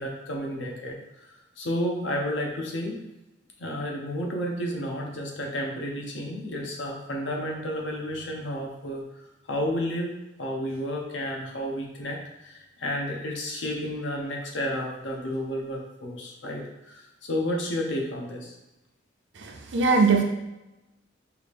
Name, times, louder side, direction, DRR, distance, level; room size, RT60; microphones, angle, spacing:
voice 1, 0.0-3.0 3.6-10.1 10.4-18.5, equal, 70° left, 0 dB, 0.9 m, -31 dB
voice 2, 19.3-20.2, right 4 dB, 70° right, 2 dB, 0.6 m, -21 dB
4.7 x 2.5 x 3.5 m, 0.97 s
head